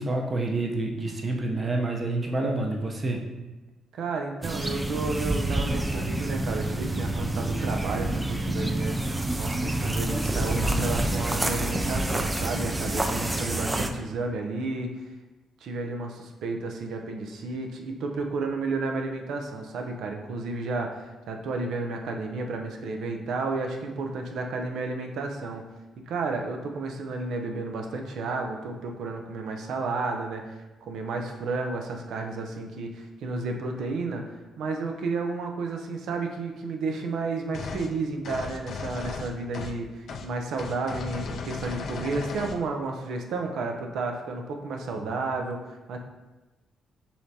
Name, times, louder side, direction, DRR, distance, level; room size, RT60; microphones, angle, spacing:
voice 1, 0.0-3.2 44.9-45.0, right 2 dB, 35° right, 1 dB, 0.8 m, -28 dB
voice 2, 3.9-14.9 15.6-25.6 26.1-34.2 34.6-46.0, right 3 dB, 75° right, 3 dB, 0.6 m, -32 dB
sound 1, 4.4-13.9, right 1 dB, 15° right, 0.4 m, -28 dB
sound 2, 37.5-37.9 38.2-39.8 40.1-40.3 40.6-42.6, left 4 dB, 60° left, 0.4 m, -36 dB
5.5 x 3.3 x 2.8 m, 1.1 s
cardioid pair, 90°, 0 cm